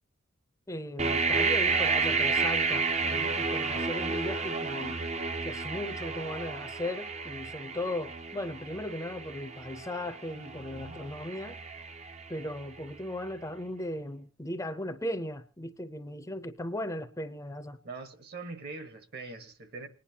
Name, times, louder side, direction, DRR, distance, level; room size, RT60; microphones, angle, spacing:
voice 1, 0.7-5.0 5.4-11.6 12.3-17.8, left 1 dB, 15° left, 0.6 m, -37 dB
sound 1, 1.0-12.8, right 4 dB, 30° right, 0.7 m, -31 dB
voice 2, 17.8-19.9, right 3 dB, 50° right, 1.4 m, -42 dB
29.0 x 10.0 x 2.8 m
head